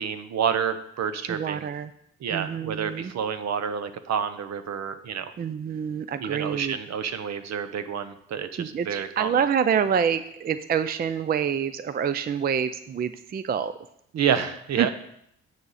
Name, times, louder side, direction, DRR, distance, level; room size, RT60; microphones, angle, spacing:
voice 1, 0.0-1.7 2.2-5.3 6.2-9.3 14.1-14.9, right 7 dB, 60° right, 11 dB, 0.8 m, -29 dB
voice 2, 1.3-1.9 2.3-3.1 5.4-6.8 8.6-13.8 14.8-14.9, right 7 dB, 30° right, 12 dB, 0.4 m, -27 dB
9.6 x 6.4 x 4.1 m, 0.73 s
cardioid pair, 90°, 30 cm